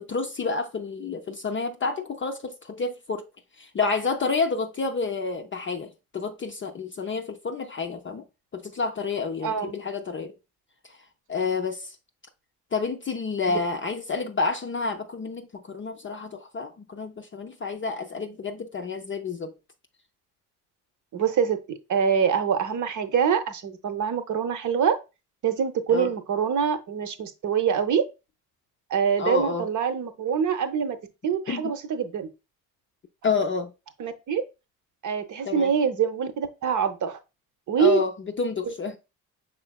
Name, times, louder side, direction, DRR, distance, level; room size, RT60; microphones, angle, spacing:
voice 1, 0.0-3.3 3.6-8.2 8.5-10.3 10.9-11.0 11.3-12.0 12.7-19.5 25.9-26.1 29.2-29.7 31.5-31.7 33.2-33.7 35.4-35.7 37.8-39.0, left 4 dB, 30° left, 0.5 m, -29 dB
voice 2, 9.4-9.7 13.5-13.6 21.1-21.6 21.9-24.9 25.4-28.0 28.9-31.0 31.2-32.3 34.0-34.4 35.0-37.2 37.7-38.0, right 7 dB, 45° right, 0.8 m, -24 dB
5.5 x 3.7 x 2.2 m
hypercardioid pair, 55°, 41 cm